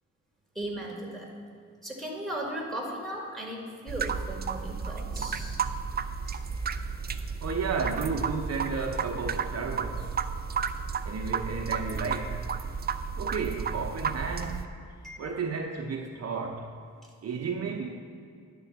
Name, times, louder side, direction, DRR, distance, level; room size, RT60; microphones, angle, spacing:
voice 1, 0.6-1.3 1.8-5.7 6.3-6.9 15.0-15.4, right 1 dB, ahead, 1.9 m, -37 dB
sound 1, 3.9-14.7, right 6 dB, 35° right, 0.4 m, -33 dB
voice 2, 7.4-10.2 11.0-12.5 13.2-16.8 17.2-18.0, right 4 dB, 55° right, 0.8 m, -33 dB
10.0 x 3.9 x 7.1 m
cardioid pair, 100°, 30 cm